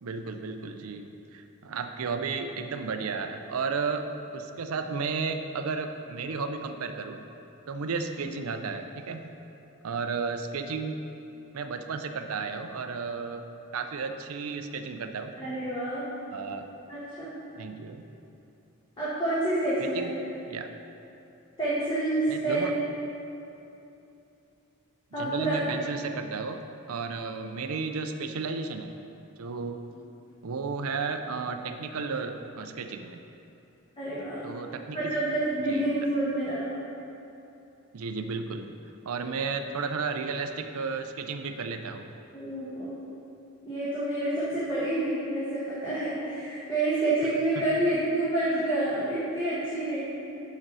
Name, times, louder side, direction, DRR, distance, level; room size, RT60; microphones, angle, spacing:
voice 1, 0.0-4.0 4.3-7.2 7.7-9.2 9.8-11.0 11.5-13.4 13.7-15.3 16.3-16.6 17.6-18.0 19.8-20.1 20.5-20.7 22.3-22.7 25.2-26.6 26.9-29.0 29.4-29.8 30.4-33.2 34.4-35.1 35.7-35.9 37.9-38.7 39.1-42.1 47.6-47.7, right 4 dB, 80° right, 7 dB, 0.5 m, -33 dB
voice 2, 15.4-16.1 16.9-17.3 19.0-20.1 21.6-22.8 25.1-25.6 34.0-34.5 34.9-36.7 42.3-43.0 43.6-50.0, right 2 dB, 20° left, -11 dB, 1.4 m, -28 dB
6.6 x 5.2 x 6.1 m, 2.9 s
head